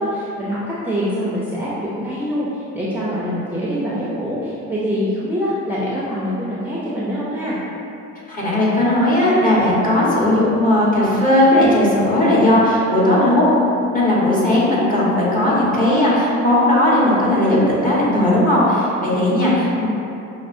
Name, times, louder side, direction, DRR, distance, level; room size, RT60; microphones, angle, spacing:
voice 1, 0.1-0.6 0.8-2.5 2.7-7.6 12.9-13.3, equal, 5° right, -9 dB, 0.5 m, -24 dB
voice 2, 8.3-13.6 13.9-19.9, left 1 dB, 25° left, -7 dB, 1.1 m, -16 dB
5.8 x 2.0 x 2.6 m, 2.7 s
cardioid pair, 90°, 30 cm